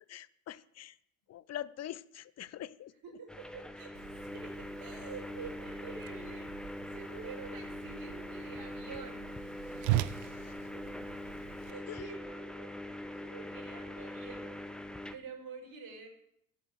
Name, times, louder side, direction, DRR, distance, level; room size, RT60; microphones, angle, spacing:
voice 1, 0.1-1.0 1.3-2.9 10.2-10.5 11.9-12.1, left 11 dB, 35° left, 18 dB, 0.7 m, -44 dB
voice 2, 3.0-9.5 10.2-11.2 11.6-14.6 15.1-16.1, right 5 dB, 50° right, 0 dB, 5.5 m, -48 dB
sound 1, 3.3-15.2, left 1 dB, ahead, 1.1 m, -43 dB
Whoosh swoosh swish, 3.9-11.7, right 14 dB, 65° right, 0.7 m, -40 dB
11.5 x 8.3 x 7.9 m, 0.73 s
hypercardioid pair, 60°, 44 cm